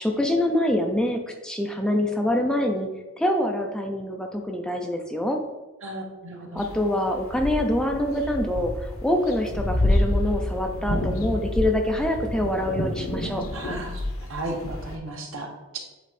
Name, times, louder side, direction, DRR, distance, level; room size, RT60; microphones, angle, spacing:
voice 1, 0.0-2.9 3.2-5.4 6.5-13.4, left 1 dB, 5° left, 3 dB, 0.5 m, -25 dB
voice 2, 5.8-6.6 13.5-14.0 14.3-15.8, right 2 dB, 65° right, 0 dB, 1.4 m, -34 dB
sound 1, 6.6-15.0, left 1 dB, 75° left, 1.0 m, -28 dB
8.3 x 3.6 x 4.2 m, 1.2 s
head